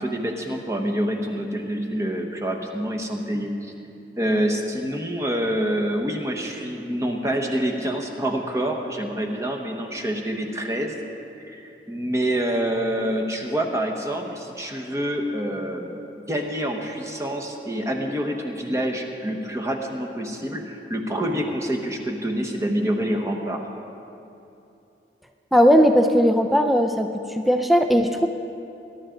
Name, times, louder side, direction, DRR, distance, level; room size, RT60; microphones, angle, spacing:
voice 1, 0.0-3.7 4.2-11.0 11.4-16.0 16.3-23.7, right 1 dB, 15° right, 2 dB, 1.1 m, -27 dB
voice 2, 25.5-28.3, equal, ahead, 5 dB, 0.4 m, -18 dB
21.5 x 11.5 x 3.8 m, 2.8 s
head